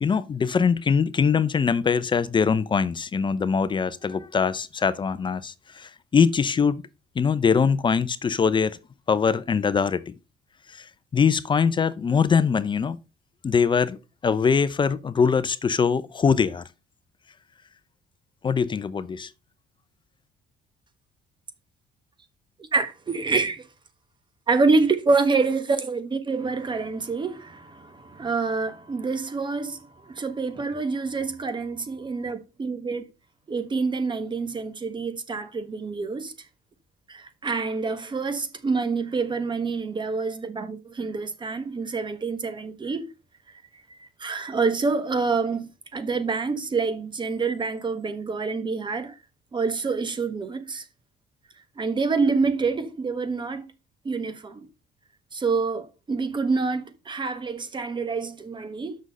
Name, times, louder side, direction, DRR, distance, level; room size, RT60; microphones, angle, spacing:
voice 1, 0.0-6.8 7.2-8.8 9.1-10.1 10.7-10.8 11.1-13.0 13.4-14.0 14.2-16.6 18.4-19.3, left 6 dB, 30° left, 0.6 m, -22 dB
voice 2, 22.6-23.7 24.5-33.0 33.5-36.3 37.1-43.1 43.5-43.6 43.9-49.1 49.5-50.8 51.8-53.6 54.0-54.7 55.3-59.0, right 4 dB, 25° right, 1.4 m, -27 dB
6.4 x 6.2 x 5.3 m
cardioid pair, 110°, 17 cm